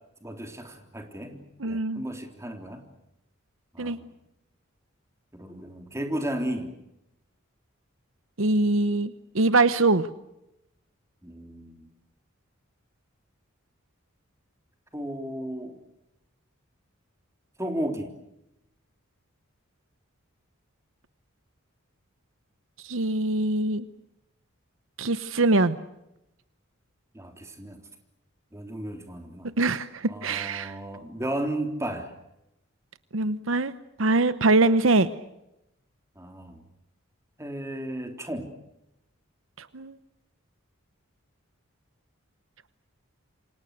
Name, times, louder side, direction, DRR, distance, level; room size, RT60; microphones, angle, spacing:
voice 1, 0.2-2.8 3.7-4.1 5.3-6.7 11.2-11.8 14.9-15.8 17.6-18.1 27.1-27.8 28.5-29.5 30.1-32.1 36.1-36.6 37.4-38.5, right 1 dB, 15° right, 4 dB, 3.5 m, -34 dB
voice 2, 1.6-2.0 3.8-4.0 8.4-10.1 22.8-23.9 25.0-25.8 29.6-30.7 33.1-33.7 34.0-35.1 39.6-40.0, right 2 dB, 70° right, 14 dB, 0.9 m, -23 dB
28.0 x 26.0 x 6.6 m, 0.87 s
head